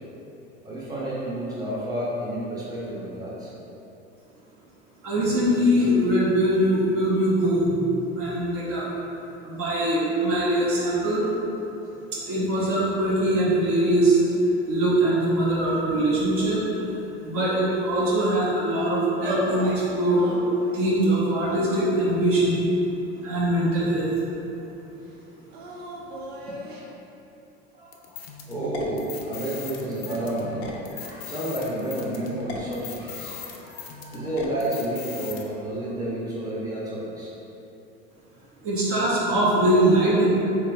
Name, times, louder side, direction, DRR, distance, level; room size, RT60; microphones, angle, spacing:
voice 1, 0.6-3.5 27.7-28.2 28.5-37.3, right 1 dB, 10° right, -7 dB, 0.8 m, -31 dB
voice 2, 5.0-8.9 9.4-11.3 12.1-14.2 14.6-16.6 17.2-20.2 20.7-22.6 23.2-24.1 38.6-40.4, right 1 dB, 45° right, -7 dB, 0.8 m, -22 dB
sound 1, 19.2-19.8 20.2-20.8 21.5-22.4 23.1-24.1 25.5-26.9, left 1 dB, 75° right, 0.6 m, -35 dB
sound 2, 27.9-35.4, left 5 dB, 70° left, 0.5 m, -38 dB
3.6 x 3.1 x 2.2 m, 3.0 s
hypercardioid pair, 75°, 32 cm